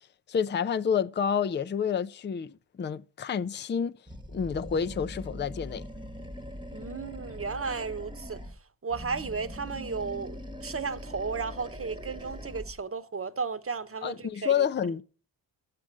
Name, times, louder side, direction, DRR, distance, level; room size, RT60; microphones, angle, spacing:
voice 1, 0.3-4.0 4.3-5.8 14.0-15.0, left 7 dB, 25° left, 0.5 m, -29 dB
Animal, 4.1-8.6 8.9-12.8, equal, 10° right, 1.3 m, -42 dB
voice 2, 6.7-8.4 8.8-14.5, right 5 dB, 30° right, 1.1 m, -34 dB
8.2 x 7.6 x 7.6 m
supercardioid pair, 50°, 48 cm